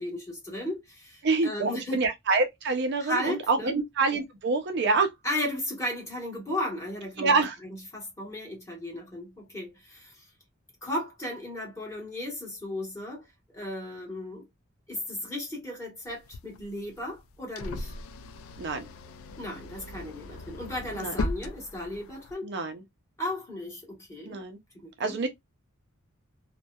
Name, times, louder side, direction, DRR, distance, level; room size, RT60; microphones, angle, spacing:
voice 1, 0.0-2.0 3.0-3.7 5.2-7.4 7.6-10.2 10.8-13.2 13.5-14.5 14.9-17.9 19.4-22.5 23.2-24.4 24.8-25.3, left 1 dB, 15° left, 1.2 m, -35 dB
voice 2, 1.2-5.1 7.2-7.6 18.6-18.9 20.9-21.1 22.4-22.8 24.2-24.6 25.0-25.3, right 3 dB, 55° right, 0.4 m, -26 dB
sound 1, 16.1-22.3, left 2 dB, 75° left, 0.3 m, -38 dB
2.7 x 2.1 x 2.2 m
head